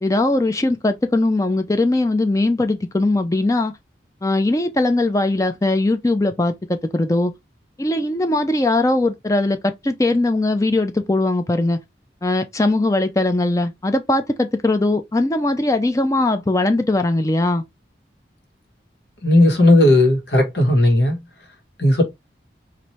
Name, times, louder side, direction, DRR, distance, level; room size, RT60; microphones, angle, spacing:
voice 1, 0.0-3.7 4.2-6.5 6.9-7.3 7.8-11.8 12.2-17.6, left 2 dB, 20° left, 0.4 m, -20 dB
voice 2, 19.2-21.2 21.8-22.0, left 1 dB, 85° left, 1.4 m, -15 dB
4.3 x 2.6 x 3.1 m
head